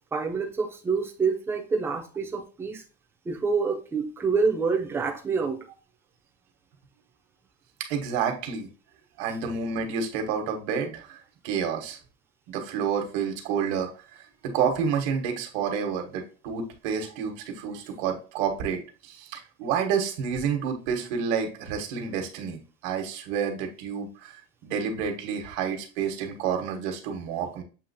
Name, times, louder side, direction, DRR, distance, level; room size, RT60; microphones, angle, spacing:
voice 1, 0.1-2.8 3.3-5.6, right 4 dB, 10° right, 0.4 m, -27 dB
voice 2, 7.9-8.7 9.2-12.0 12.5-27.6, right 7 dB, 70° right, 1.1 m, -29 dB
7.0 x 2.9 x 2.6 m
cardioid pair, 175°, 32 cm